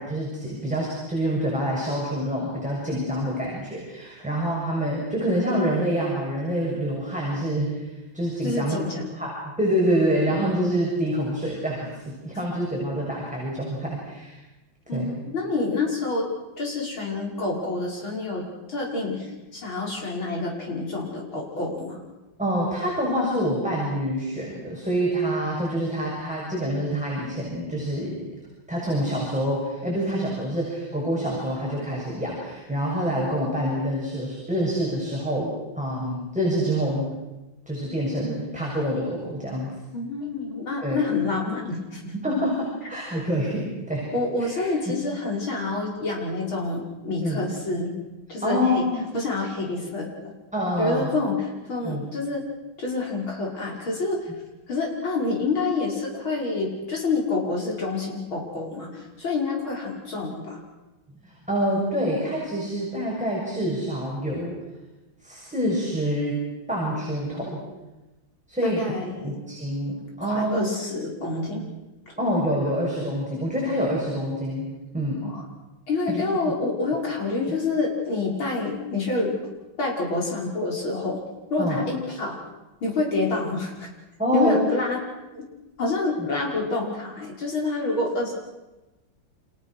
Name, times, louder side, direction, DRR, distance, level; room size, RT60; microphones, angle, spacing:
voice 1, 0.0-8.8 9.1-14.4 14.9-15.1 22.4-28.3 28.7-37.1 37.7-39.7 40.8-41.0 42.2-44.1 44.5-44.9 47.2-47.4 48.4-49.1 50.5-51.2 51.8-52.0 61.2-64.6 65.2-66.4 66.7-67.6 68.5-68.9 69.2-70.7 72.2-75.2 76.1-76.3 81.6-81.8 84.2-84.7 86.2-86.3, equal, 5° right, -4 dB, 6.8 m, -26 dB
voice 2, 8.4-9.1 14.9-16.3 16.6-22.0 39.9-42.1 44.1-48.0 48.3-48.9 49.1-50.1 50.8-52.4 52.8-54.3 54.7-60.6 68.6-69.4 70.2-71.6 75.2-75.4 75.9-79.3 79.8-81.2 81.5-82.4 82.8-83.9 84.3-85.0 85.3-85.4 85.8-88.3, left 3 dB, 80° left, -2 dB, 6.5 m, -27 dB
29.5 x 27.5 x 6.5 m, 1.1 s
omnidirectional pair, 2.2 m